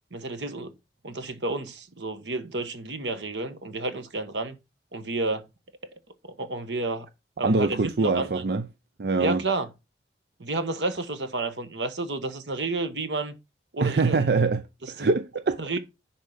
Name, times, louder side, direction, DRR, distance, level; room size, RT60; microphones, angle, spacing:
voice 1, 0.1-0.7 1.0-4.6 4.9-5.5 6.2-7.1 7.4-8.4 9.2-9.7 10.4-13.3 13.7-14.3 14.8-15.1 15.6-15.8, right 2 dB, 85° right, 1.3 m, -31 dB
voice 2, 7.4-8.7 9.0-9.4 13.8-15.6, right 3 dB, 65° right, 0.5 m, -24 dB
10.0 x 4.3 x 5.1 m
head